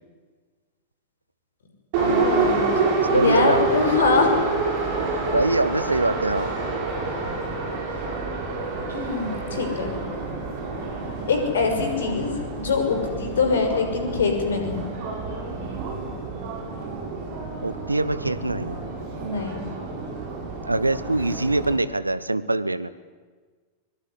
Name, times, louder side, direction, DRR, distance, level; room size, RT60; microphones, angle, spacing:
Subway metro underground, 1.9-21.8, right 4 dB, 50° right, 7.4 m, -28 dB
voice 1, 2.0-2.7 3.1-4.3 8.9-9.9 11.3-14.9 19.2-19.6, left 4 dB, 65° left, 5 dB, 6.0 m, -23 dB
voice 2, 3.1-3.7 5.3-6.5 17.6-18.8 20.7-22.9, right 2 dB, 85° right, 16 dB, 1.1 m, -23 dB
sound 1, 9.7-10.3 12.8-13.8 15.4-16.5, left 5 dB, 30° left, 3.8 m, -44 dB
23.5 x 23.0 x 9.9 m, 1.4 s
figure-of-eight pair, 90°, 0 cm